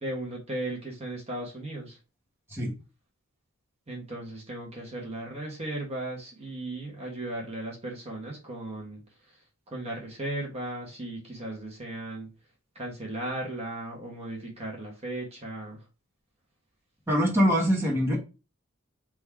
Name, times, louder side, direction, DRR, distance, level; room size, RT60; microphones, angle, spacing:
voice 1, 0.0-2.0 3.9-9.0 9.3-9.4 9.7-12.3 12.7-15.8, right 1 dB, 30° right, -1 dB, 1.3 m, -36 dB
voice 2, 17.1-18.2, equal, 10° right, -4 dB, 1.4 m, -23 dB
3.7 x 3.0 x 4.5 m, 0.30 s
head